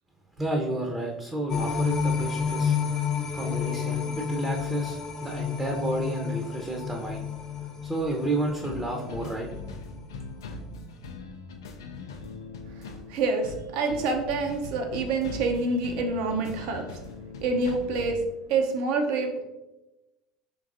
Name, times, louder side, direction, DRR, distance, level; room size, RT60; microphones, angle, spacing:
voice 1, 0.4-2.8 3.3-7.2 7.8-9.5, right 1 dB, 15° right, 0 dB, 0.6 m, -31 dB
sound 1, 1.5-9.9 10.3-10.4, left 6 dB, 30° left, 0.6 m, -30 dB
sound 2, 8.6-18.2, left 3 dB, 80° left, 0.4 m, -41 dB
voice 2, 12.8-16.9 17.4-19.4, right 3 dB, 60° right, 4 dB, 0.6 m, -27 dB
4.6 x 3.2 x 2.5 m, 1.0 s
hypercardioid pair, 70°, 2 cm